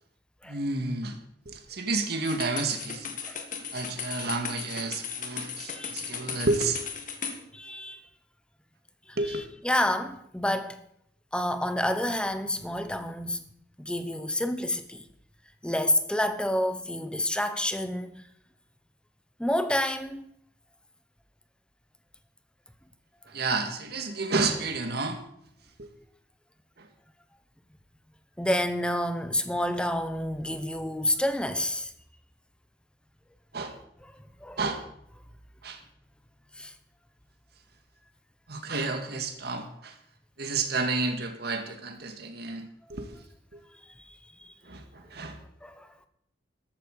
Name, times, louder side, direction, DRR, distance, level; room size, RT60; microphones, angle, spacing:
voice 1, 0.5-1.2 1.5-3.1 3.7-6.8 9.2-9.4 23.3-25.2 25.8-25.9 33.5-33.7 34.6-34.8 35.6-35.8 38.5-39.9 40.4-42.6 42.9-43.1 44.7-45.4, right 3 dB, 60° right, 2.0 m, -30 dB
sound 1, 2.2-7.4, left 7 dB, 45° left, 1.8 m, -36 dB
voice 2, 7.5-8.0 9.2-10.8 11.3-13.4 13.8-15.0 15.6-18.2 19.4-20.2 28.4-31.9 34.4-34.6 36.6-36.7 45.6-45.9, left 1 dB, 5° left, 1.0 m, -29 dB
14.0 x 13.0 x 4.9 m
head